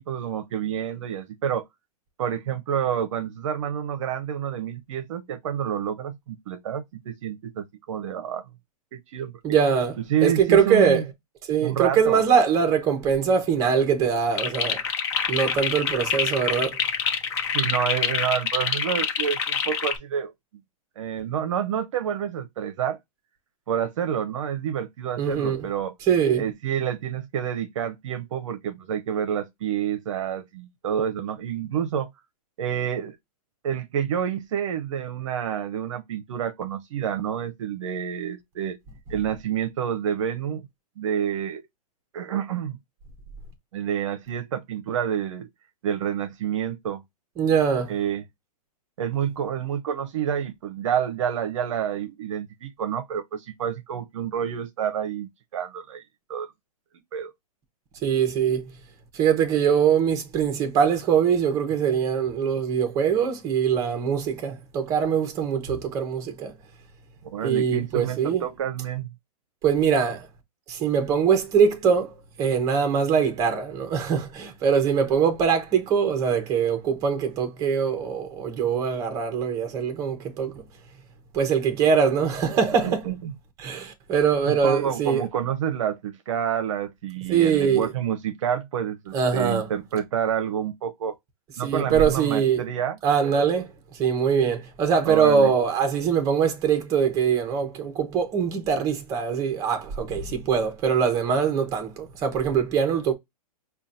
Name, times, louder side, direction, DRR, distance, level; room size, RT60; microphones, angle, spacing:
voice 1, 0.0-1.6 2.2-8.4 8.9-9.3 10.1-11.0 11.6-12.2 17.5-20.3 21.0-23.0 23.7-25.9 26.4-32.1 32.6-33.2 33.6-38.8 39.1-40.7 41.0-41.7 42.1-42.8 43.7-45.5 45.8-47.0 47.9-48.2 49.0-56.0 56.3-56.5 57.1-57.3 67.2-69.1 82.4-82.5 82.8-83.3 84.5-91.1 91.6-93.0 93.2-93.4 95.1-95.5, right 9 dB, 55° right, 0.6 m, -28 dB
voice 2, 9.4-11.0 11.5-14.8 15.3-16.8 25.2-25.7 26.1-26.4 47.4-47.9 58.0-58.7 59.1-66.5 67.4-68.4 69.6-70.3 70.7-80.6 81.3-83.0 83.6-85.3 87.3-87.9 89.1-89.7 91.6-92.6 93.0-103.1, right 7 dB, 15° right, 0.7 m, -22 dB
sound 1, 14.4-20.0, left 7 dB, 45° left, 0.9 m, -26 dB
5.5 x 2.3 x 2.5 m
hypercardioid pair, 170°, 19 cm